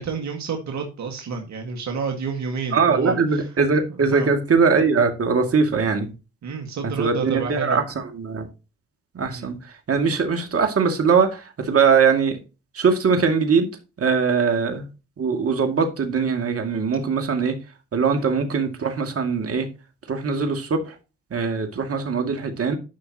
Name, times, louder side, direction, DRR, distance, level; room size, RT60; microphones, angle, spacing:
voice 1, 0.0-3.4 4.1-4.3 6.4-7.8 9.3-9.5 14.5-14.6 18.1-18.2, right 5 dB, 70° right, 1.9 m, -29 dB
voice 2, 2.7-6.1 6.8-8.5 9.1-12.4 12.7-13.7 14.0-14.9 15.2-17.6 17.9-19.7 20.1-21.0 21.3-22.8, right 5 dB, 50° right, 2.3 m, -21 dB
11.5 x 5.8 x 2.9 m
supercardioid pair, 50°, 29 cm